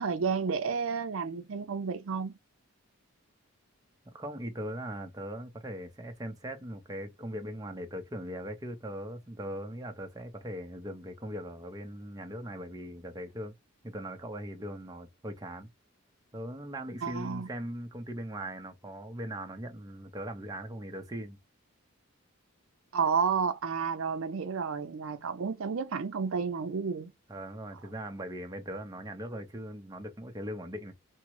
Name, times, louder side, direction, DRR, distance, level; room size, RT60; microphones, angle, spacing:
voice 1, 0.0-2.3 17.0-17.5 22.9-27.1, right 5 dB, 70° right, 0.5 m, -31 dB
voice 2, 4.0-13.5 13.8-15.7 16.3-21.4 27.3-30.9, equal, 15° right, 0.6 m, -40 dB
3.6 x 2.0 x 2.9 m
head